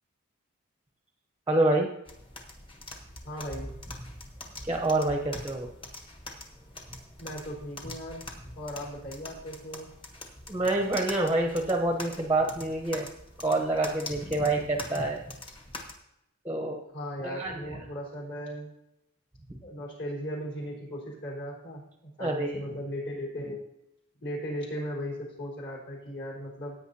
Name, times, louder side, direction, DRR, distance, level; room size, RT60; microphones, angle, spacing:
voice 1, 1.5-1.9 4.6-5.7 10.5-13.1 13.4-15.2 16.4-16.8 17.2-17.6 22.2-22.5, right 2 dB, 15° right, 3 dB, 0.8 m, -27 dB
sound 1, 2.1-15.9, left 1 dB, 25° left, 1.3 m, -44 dB
voice 2, 3.2-3.7 7.2-8.2 8.6-9.9 16.9-18.7 19.6-23.6 24.2-26.8, equal, 55° left, -2 dB, 4.3 m, -37 dB
16.0 x 9.0 x 2.8 m, 0.85 s
head